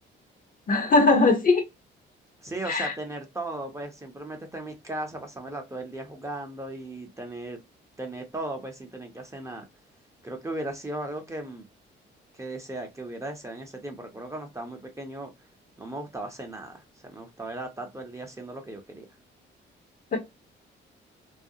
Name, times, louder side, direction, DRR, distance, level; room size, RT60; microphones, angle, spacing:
voice 1, 0.7-1.6 2.7-2.9 20.1-20.2, left 3 dB, 45° left, 0.8 m, -20 dB
voice 2, 2.4-7.6 8.0-9.6 10.2-11.7 12.3-15.3 15.8-19.1, right 1 dB, 15° right, 0.7 m, -37 dB
2.4 x 2.1 x 2.7 m
cardioid pair, 90°, 20 cm